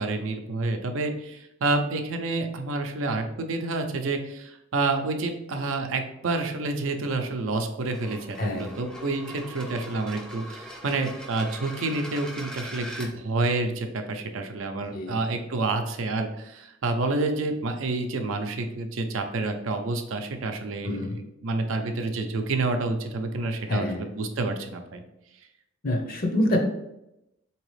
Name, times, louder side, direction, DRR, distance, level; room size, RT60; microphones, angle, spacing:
voice 1, 0.0-25.0, right 3 dB, 85° right, 5 dB, 0.5 m, -29 dB
sound 1, 7.8-13.1, equal, 5° left, 0.5 m, -41 dB
voice 2, 20.8-21.2 23.7-24.0 25.8-26.6, left 1 dB, 50° left, 3 dB, 0.7 m, -26 dB
3.9 x 2.9 x 3.2 m, 0.86 s
head